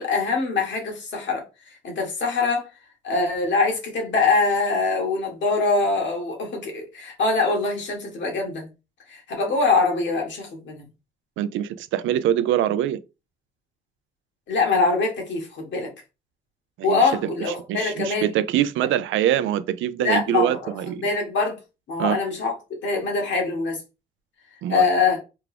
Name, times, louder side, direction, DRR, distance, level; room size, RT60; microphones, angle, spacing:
voice 1, 0.0-1.4 1.8-2.7 3.0-8.7 9.1-10.8 14.5-15.9 16.8-18.3 20.0-20.6 20.9-21.6 21.9-22.5 22.8-23.8 24.7-25.2, left 4 dB, 65° left, 1.6 m, -23 dB
voice 2, 11.4-13.0 16.8-17.1 17.7-21.1 22.0-22.2 24.6-24.8, right 11 dB, 80° right, 0.4 m, -24 dB
3.5 x 2.4 x 3.3 m
cardioid pair, 90°, 20 cm